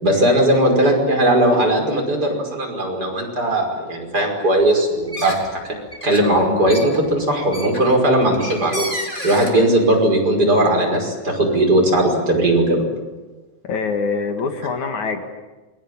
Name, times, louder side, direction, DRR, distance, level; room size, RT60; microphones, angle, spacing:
voice 1, 0.0-5.6 6.0-8.9 9.2-12.8, right 1 dB, 20° right, 1 dB, 5.8 m, -18 dB
sound 1, 5.0-5.6 5.9-9.5, equal, 10° left, 3.5 m, -31 dB
voice 2, 13.6-15.3, left 5 dB, 50° left, 5 dB, 3.0 m, -24 dB
29.0 x 22.0 x 8.8 m, 1.2 s
omnidirectional pair, 4.8 m